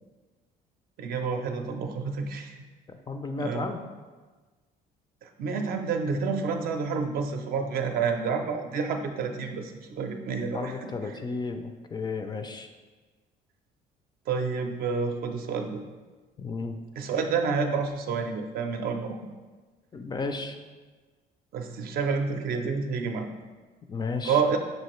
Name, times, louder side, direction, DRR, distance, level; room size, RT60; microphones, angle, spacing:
voice 1, 1.0-2.6 3.4-3.6 5.2-10.7 14.3-15.8 17.0-19.2 21.5-23.3 24.2-24.6, right 5 dB, 60° right, 5 dB, 0.5 m, -29 dB
voice 2, 2.9-3.9 10.5-12.7 16.4-16.8 19.9-20.6 23.9-24.4, left 4 dB, 25° left, 6 dB, 0.3 m, -33 dB
6.4 x 2.5 x 3.0 m, 1.3 s
cardioid pair, 110°, 17 cm